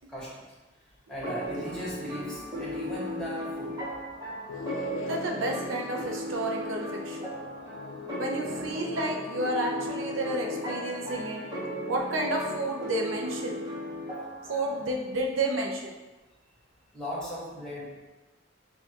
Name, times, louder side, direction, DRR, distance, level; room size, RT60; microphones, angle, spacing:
voice 1, 0.1-0.4 1.1-3.7 16.9-18.1, left 1 dB, 5° left, -7 dB, 1.4 m, -37 dB
sound 1, 1.2-14.9, equal, 20° right, 1.0 m, -37 dB
sound 2, 4.5-12.0, left 5 dB, 90° left, 0.4 m, -41 dB
voice 2, 5.1-7.3 8.2-11.4 11.9-13.6 14.5-15.9, right 2 dB, 90° right, 0 dB, 0.7 m, -31 dB
7.1 x 2.5 x 2.9 m, 1.2 s
head